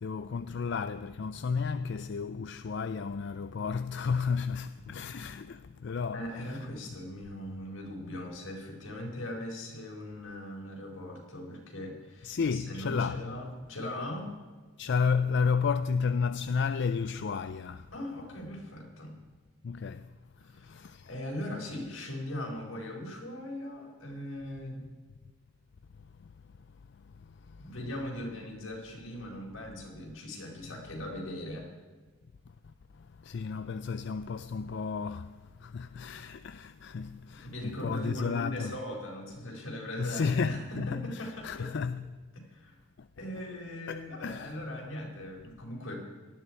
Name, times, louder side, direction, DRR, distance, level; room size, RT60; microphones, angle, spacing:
voice 1, 0.0-6.2 6.5-6.6 12.2-13.2 14.8-17.9 19.6-20.1 20.5-21.1 26.2-26.3 27.1-27.7 32.6-38.8 40.0-42.1 43.0-43.1 43.9-44.6, left 5 dB, 55° left, 0.4 m, -32 dB
voice 2, 6.1-14.3 17.9-19.2 20.4-24.9 27.6-31.7 37.4-41.7 42.3-42.7 43.2-46.0, left 1 dB, 80° left, 4.7 m, -39 dB
18.5 x 13.5 x 4.6 m
head